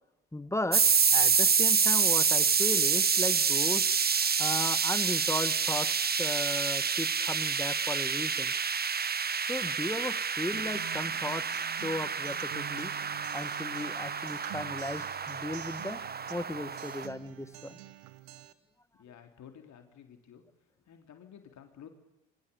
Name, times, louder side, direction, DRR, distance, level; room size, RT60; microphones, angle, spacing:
voice 1, 0.3-3.9 4.2-8.5 9.5-12.9 13.3-16.0 16.3-17.8, left 1 dB, 10° left, 14 dB, 1.5 m, -36 dB
sound 1, 0.7-17.1, right 6 dB, 25° right, 1.2 m, -28 dB
Acoustic guitar, 10.5-18.5, right 14 dB, 70° right, 1.7 m, -47 dB
voice 2, 19.0-20.4 20.9-21.9, left 8 dB, 50° left, 5 dB, 3.6 m, -52 dB
27.5 x 23.5 x 7.1 m, 0.88 s
hypercardioid pair, 55°, 36 cm